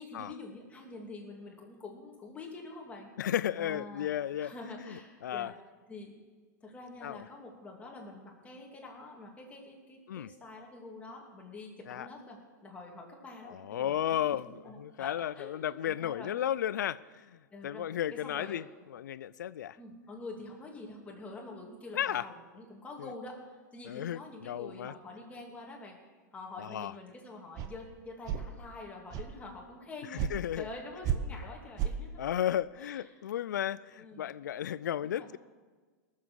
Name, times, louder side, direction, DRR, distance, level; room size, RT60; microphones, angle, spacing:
voice 1, 0.0-3.1 3.6-4.1 4.4-5.5 5.9-6.1 6.6-14.2 14.4-16.3 17.5-18.6 19.8-26.0 26.3-30.3 30.6-32.3 32.8-33.0 34.0-34.3 35.0-35.3, left 2 dB, 15° left, -1 dB, 2.7 m, -46 dB
voice 2, 3.2-4.5 4.8-5.5 7.0-7.3 10.1-10.3 11.9-12.1 13.5-18.6 18.9-19.8 21.9-22.3 23.0-23.1 23.9-24.9 26.6-26.9 30.1-30.7 32.2-35.4, left 11 dB, 90° left, 19 dB, 0.4 m, -34 dB
sound 1, 27.6-27.7 28.3-28.5 29.1-29.3 30.2-30.3 31.0-31.2 31.8-31.9, right 10 dB, 40° right, 1.0 m, -31 dB
18.5 x 7.5 x 6.4 m, 1.4 s
hypercardioid pair, 130°, 10 cm